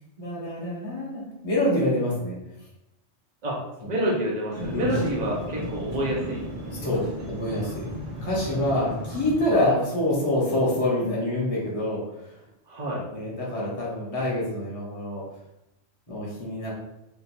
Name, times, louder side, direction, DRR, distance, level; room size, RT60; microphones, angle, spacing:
voice 1, 0.2-2.3 3.8-3.9 4.7-5.0 6.7-7.0 7.3-7.9 8.2-12.3 13.1-15.2 16.1-16.7, left 1 dB, 30° left, -6 dB, 1.2 m, -26 dB
voice 2, 3.9-6.5 7.1-7.2 8.5-9.1 12.7-13.0, right 1 dB, 40° right, -4 dB, 1.0 m, -28 dB
sound 1, 4.5-9.6, equal, 80° right, 1.6 m, -35 dB
3.4 x 2.7 x 4.2 m, 0.88 s
omnidirectional pair, 1.2 m